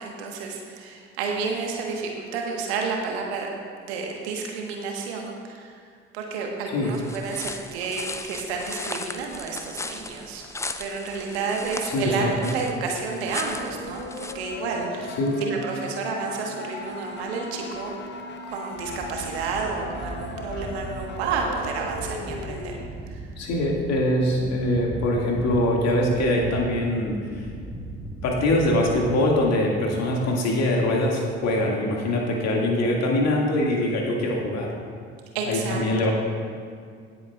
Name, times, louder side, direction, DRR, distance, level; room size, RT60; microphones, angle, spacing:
voice 1, 0.0-3.5 3.8-5.7 6.1-10.4 10.8-14.0 14.3-17.9 18.5-22.8 23.1-23.3 35.3-36.1, right 4 dB, 70° right, 1 dB, 1.4 m, -30 dB
sound 1, 6.9-14.3, left 3 dB, 10° left, 0.4 m, -37 dB
voice 2, 11.8-12.5 15.2-15.4 23.4-27.5 28.2-34.7 35.4-36.1, left 1 dB, 50° left, -1 dB, 2.1 m, -23 dB
sound 2, 12.8-22.8, left 2 dB, 35° left, 1.0 m, -37 dB
sound 3, 18.8-29.9, right 2 dB, 10° right, 1.5 m, -38 dB
17.5 x 8.0 x 2.4 m, 2.1 s
figure-of-eight pair, 50°, 33 cm